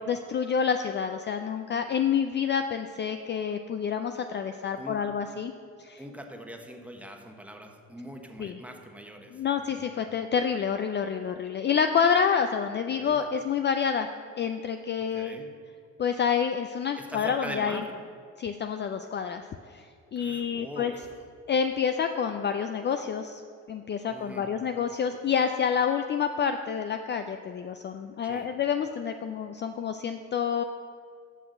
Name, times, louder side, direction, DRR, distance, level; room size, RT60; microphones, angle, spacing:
voice 1, 0.1-5.5 5.8-6.0 8.4-8.6 9.3-14.1 14.4-15.4 16.0-17.8 18.4-19.4 19.7-19.8 20.1-20.9 21.5-23.4 23.7-30.6, left 7 dB, 35° left, 7 dB, 0.4 m, -28 dB
voice 2, 6.0-9.3 9.7-9.8 12.9-13.2 15.1-15.5 17.0-17.9 20.2-21.0 24.1-24.5 28.2-28.5, equal, 5° right, 3 dB, 1.0 m, -42 dB
6.3 x 5.9 x 6.5 m, 2.2 s
cardioid pair, 90°, 30 cm